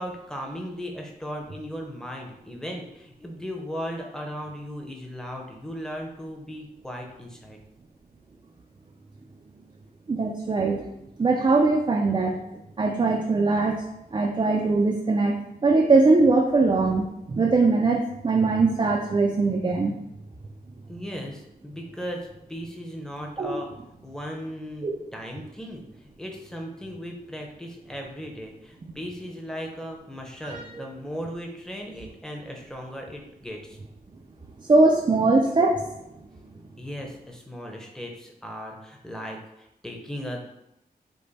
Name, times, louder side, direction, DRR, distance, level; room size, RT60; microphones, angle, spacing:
voice 1, 0.0-7.6 20.9-23.7 24.0-33.8 36.8-40.5, equal, 5° left, 0 dB, 0.7 m, -37 dB
voice 2, 10.1-10.8 11.2-12.4 12.8-13.8 14.1-15.4 15.6-19.9 23.4-23.6 24.8-24.9 30.4-30.6 34.7-35.8, right 3 dB, 30° right, 0 dB, 0.4 m, -21 dB
5.2 x 2.1 x 4.0 m, 0.84 s
wide cardioid pair, 125°, 17 cm